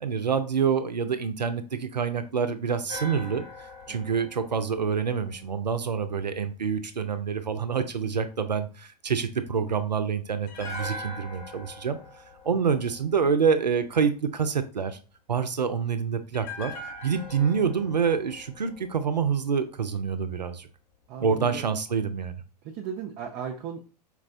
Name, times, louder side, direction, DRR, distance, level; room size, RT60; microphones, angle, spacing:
voice 1, 0.0-12.0 12.4-15.0 15.3-16.7 17.0-20.7 21.2-22.4, right 6 dB, 85° right, 10 dB, 0.4 m, -27 dB
sound 1, 2.9-6.1 10.5-13.7 16.3-19.5 19.8-20.0, left 1 dB, 40° left, 1.0 m, -42 dB
voice 2, 21.1-21.7 22.6-23.8, right 7 dB, 30° right, 2 dB, 0.4 m, -36 dB
4.4 x 2.1 x 2.5 m, 0.36 s
figure-of-eight pair, 100°, 21 cm